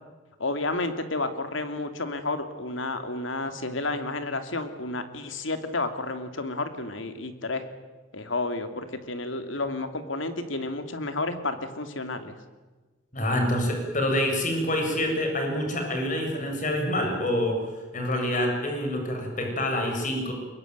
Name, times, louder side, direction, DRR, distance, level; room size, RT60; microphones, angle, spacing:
voice 1, 0.4-7.7 8.1-12.3, left 2 dB, 80° left, 8 dB, 2.8 m, -31 dB
voice 2, 13.1-17.7 17.9-20.3, left 1 dB, 40° left, 3 dB, 7.0 m, -26 dB
23.5 x 22.0 x 9.4 m, 1.3 s
head